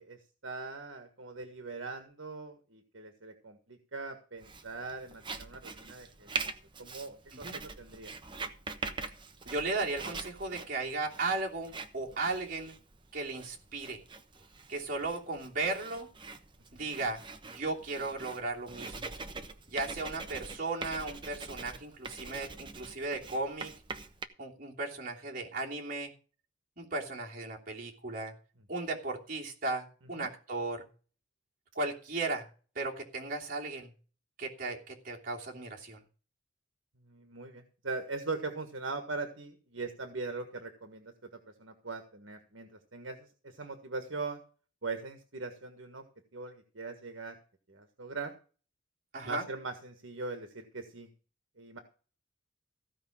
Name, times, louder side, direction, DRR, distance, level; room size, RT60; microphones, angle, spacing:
voice 1, 0.0-6.3 6.8-8.1 16.8-16.9 30.2-30.3 37.0-44.4 44.8-46.0 46.3-47.4 47.7-48.3 49.2-51.1 51.6-51.8, right 3 dB, 75° right, 7 dB, 1.6 m, -41 dB
Writing, 4.4-24.3, right 4 dB, 25° right, 1.0 m, -43 dB
voice 2, 9.4-12.7 13.1-14.0 14.7-16.1 16.7-19.1 19.7-23.7 24.4-26.1 26.8-28.3 28.7-30.8 31.7-32.5 32.7-33.9 34.4-36.0 49.1-49.5, right 3 dB, 45° right, -2 dB, 3.0 m, -36 dB
15.5 x 5.3 x 7.4 m, 0.37 s
head